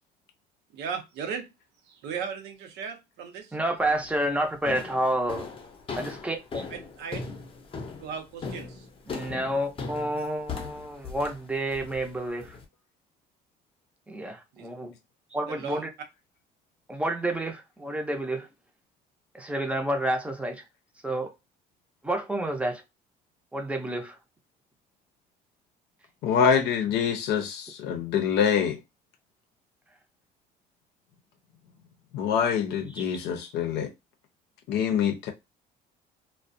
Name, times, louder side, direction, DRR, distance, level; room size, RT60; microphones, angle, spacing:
voice 1, 0.7-1.5 1.9-3.6 6.7-7.2 8.0-8.8 14.6-14.7 15.5-15.8, right 7 dB, 85° right, 0.7 m, -36 dB
voice 2, 3.5-5.5 5.9-6.6 9.1-12.6 14.1-14.9 15.3-15.9 16.9-18.5 19.3-20.6 21.0-21.3 22.0-22.8 23.5-24.2 26.5-26.6, right 1 dB, 5° right, 0.5 m, -29 dB
sound 1, 3.8-4.2 4.7-12.6, left 4 dB, 30° left, 0.6 m, -39 dB
voice 3, 26.2-28.8 32.1-33.9 34.7-35.3, left 7 dB, 80° left, 0.6 m, -25 dB
2.3 x 2.1 x 2.5 m
cardioid pair, 110°, 17 cm